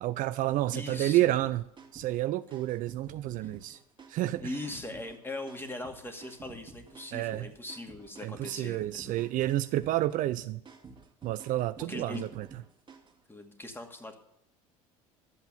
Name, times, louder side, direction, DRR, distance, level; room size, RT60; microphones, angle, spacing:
voice 1, 0.0-1.6 1.9-3.8 4.1-4.5 7.1-7.5 8.2-10.6 11.2-12.5, right 15 dB, 50° right, 13 dB, 0.5 m, -30 dB
voice 2, 0.7-1.2 3.4-3.8 4.4-9.2 11.9-12.2 13.3-14.2, left 1 dB, 15° left, 5 dB, 2.4 m, -40 dB
sound 1, 1.4-13.2, right 4 dB, 30° right, 2.4 m, -52 dB
12.5 x 8.0 x 9.2 m, 0.75 s
figure-of-eight pair, 60°, 18 cm